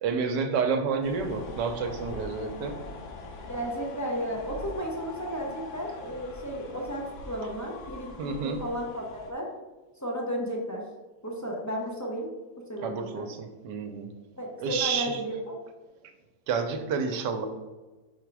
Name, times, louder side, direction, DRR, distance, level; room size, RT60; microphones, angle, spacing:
voice 1, 0.0-2.8 8.2-8.6 12.8-14.1 14.6-15.2 16.5-17.5, right 5 dB, 85° right, 6 dB, 1.3 m, -29 dB
sound 1, 1.0-9.3, left 3 dB, 55° left, 0.9 m, -43 dB
voice 2, 3.5-9.5 10.0-10.8 11.2-12.3 12.7-13.2 14.4-15.6, equal, 25° left, -2 dB, 0.4 m, -33 dB
5.0 x 4.5 x 4.7 m, 1.2 s
omnidirectional pair, 1.8 m